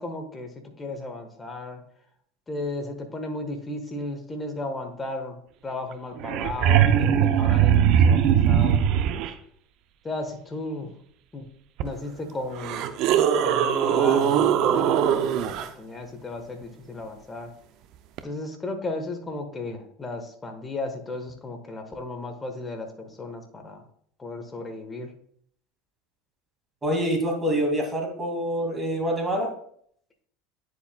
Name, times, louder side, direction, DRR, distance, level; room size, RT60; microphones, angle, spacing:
voice 1, 0.0-1.8 2.5-9.2 10.0-10.9 11.3-11.5 11.8-12.9 13.4-15.5 15.8-17.5 18.2-23.8 24.2-25.1, left 2 dB, 20° left, 5 dB, 1.3 m, -35 dB
sound 1, 5.9-6.0 6.2-9.3 11.8-11.9 12.6-15.7 18.2-18.3, right 9 dB, 60° right, 0.6 m, -20 dB
voice 2, 26.8-29.5, equal, 20° right, 1 dB, 2.3 m, -26 dB
9.7 x 4.8 x 2.3 m, 0.65 s
hypercardioid pair, 80°, 0 cm